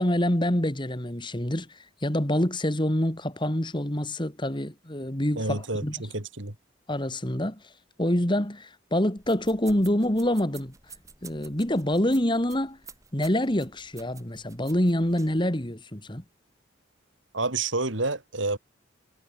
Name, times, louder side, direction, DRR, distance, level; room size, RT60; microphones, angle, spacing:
voice 1, 0.0-5.9 6.9-7.6 8.0-10.7 11.2-12.8 13.1-16.2, left 1 dB, 25° left, 2.4 m, -26 dB
voice 2, 5.4-6.6 17.3-18.6, right 3 dB, 75° right, 3.6 m, -29 dB
sound 1, 9.2-15.4, right 5 dB, 15° right, 5.2 m, -50 dB
head